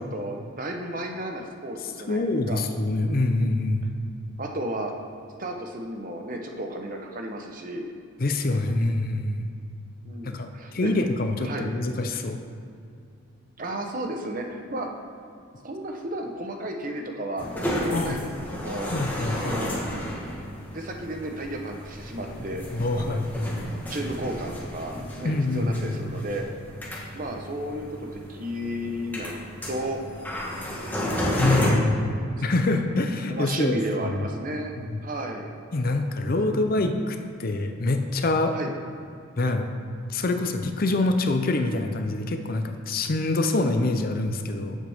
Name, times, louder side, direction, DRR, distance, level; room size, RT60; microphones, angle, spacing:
voice 1, 0.0-2.6 4.4-4.9 5.4-7.9 10.0-10.9 11.4-11.7 13.6-14.9 15.6-17.5 17.8-18.9 19.3-19.8 20.7-23.2 23.9-26.5 27.1-30.0 31.0-32.5 33.3-34.7 35.0-35.5 36.3-36.7 38.5-38.7, right 1 dB, 40° right, 2 dB, 0.9 m, -33 dB
voice 2, 2.1-3.9 8.2-9.5 10.2-12.4 17.9-18.2 18.9-19.6 22.7-23.7 25.2-25.9 31.4-32.1 32.4-34.2 34.8-35.0 35.7-38.6 39.4-39.7 40.1-44.8, left 2 dB, 45° left, 6 dB, 0.6 m, -25 dB
sound 1, 17.4-31.7, equal, 10° left, 1.2 m, -32 dB
12.0 x 7.4 x 3.5 m, 2.4 s
head